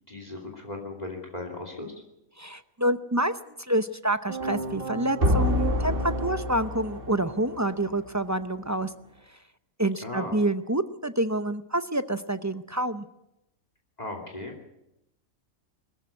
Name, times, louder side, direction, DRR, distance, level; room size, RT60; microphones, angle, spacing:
voice 1, 0.1-1.9 10.0-10.4 14.0-14.7, left 2 dB, 30° left, 3 dB, 2.8 m, -37 dB
voice 2, 2.4-8.9 9.8-13.1, right 1 dB, 20° right, 10 dB, 0.4 m, -27 dB
sound 1, 4.3-7.6, left 1 dB, 40° right, 2.5 m, -27 dB
21.5 x 14.0 x 9.5 m, 0.88 s
omnidirectional pair, 1.4 m